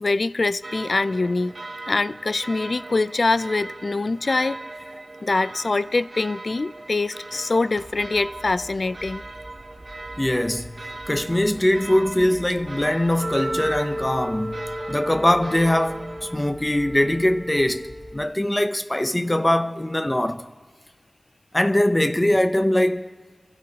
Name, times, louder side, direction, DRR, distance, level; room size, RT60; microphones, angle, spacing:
voice 1, 0.0-1.5 1.9-4.6 5.2-9.2, left 3 dB, 75° left, 0.3 m, -24 dB
sound 1, 0.6-16.4, right 2 dB, 65° right, 0.8 m, -39 dB
sound 2, 7.7-18.2, equal, 5° right, 1.7 m, -45 dB
voice 2, 10.2-10.8 11.1-20.4 21.5-23.1, left 1 dB, 25° left, 0.7 m, -22 dB
Wind instrument woodwind instrument, 13.2-18.3, equal, 90° right, 2.9 m, -33 dB
26.0 x 13.0 x 2.9 m
wide cardioid pair, 50°, 0 cm